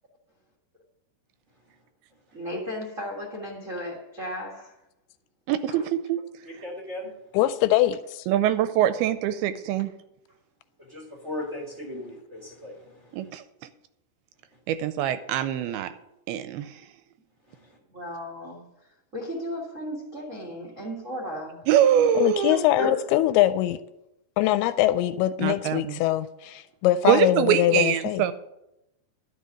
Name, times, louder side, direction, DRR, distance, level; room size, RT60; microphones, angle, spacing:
voice 1, 2.3-4.7 5.7-5.9 8.4-8.5 17.9-21.7 26.5-26.6, equal, 60° right, 0.7 m, -36 dB
voice 2, 5.5-6.2 8.3-9.9 13.1-13.4 14.7-15.9 16.3-16.8 21.7-22.6 25.4-26.0 27.0-28.3, right 10 dB, 80° right, 2.4 m, -23 dB
voice 3, 6.4-7.1 10.8-13.3 17.5-17.8 22.8-22.9, left 2 dB, 35° right, 1.1 m, -36 dB
voice 4, 7.3-8.2 22.2-23.8 24.4-28.2, left 14 dB, 80° left, 2.4 m, -23 dB
12.0 x 5.7 x 8.4 m
omnidirectional pair, 4.7 m